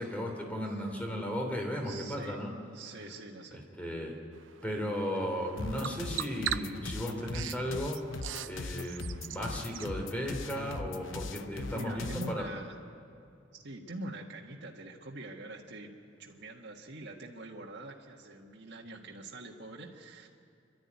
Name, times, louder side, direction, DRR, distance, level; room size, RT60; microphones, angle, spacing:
voice 1, 0.0-2.5 3.5-4.1 4.6-8.0 8.4-12.4, equal, 10° left, 1 dB, 3.2 m, -35 dB
voice 2, 1.8-2.4 2.7-3.6 11.7-12.8 13.5-15.9 16.2-20.3, right 2 dB, 60° right, -1 dB, 1.7 m, -44 dB
Bird vocalization bird call bird song, 4.3-9.9, right 10 dB, 80° right, 0.7 m, -41 dB
sound 1, 5.6-12.4, left 3 dB, 85° left, 0.9 m, -40 dB
27.0 x 12.5 x 9.6 m, 2.5 s
head